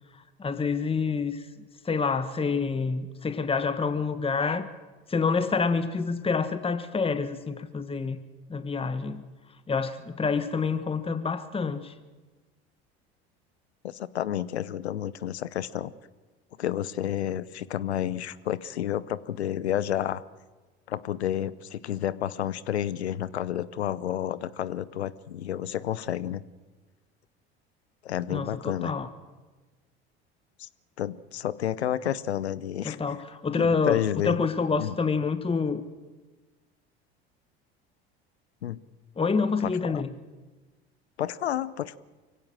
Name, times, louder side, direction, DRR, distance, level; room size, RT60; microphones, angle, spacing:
voice 1, 0.4-1.4 1.8-4.7 5.1-8.2 8.5-9.2 9.7-11.9 28.3-29.1 32.8-35.8 39.2-40.1, left 5 dB, 15° left, 11 dB, 1.3 m, -27 dB
voice 2, 13.8-15.9 16.6-20.2 20.9-26.4 28.0-28.9 30.6-30.7 31.0-33.0 33.5-34.4 34.8-34.9 38.6-38.8 39.6-40.0 41.2-42.0, left 11 dB, 85° left, 19 dB, 0.7 m, -30 dB
24.0 x 16.5 x 7.6 m, 1.3 s
hypercardioid pair, 70°, 32 cm